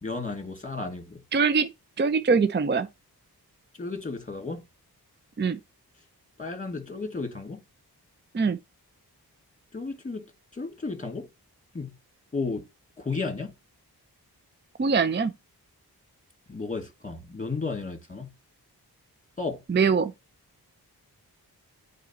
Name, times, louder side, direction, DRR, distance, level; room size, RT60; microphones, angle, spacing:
voice 1, 0.0-1.2 3.7-4.7 6.4-7.6 9.7-10.2 10.5-11.3 11.7-12.0 12.3-12.7 13.0-13.5 16.5-18.3 19.4-19.6, left 3 dB, 20° left, 2.1 m, -33 dB
voice 2, 1.3-1.7 2.0-2.9 5.4-5.6 8.3-8.6 14.8-15.3 19.7-20.1, right 5 dB, 30° right, 0.5 m, -23 dB
8.1 x 4.2 x 4.2 m
cardioid pair, 50°, 39 cm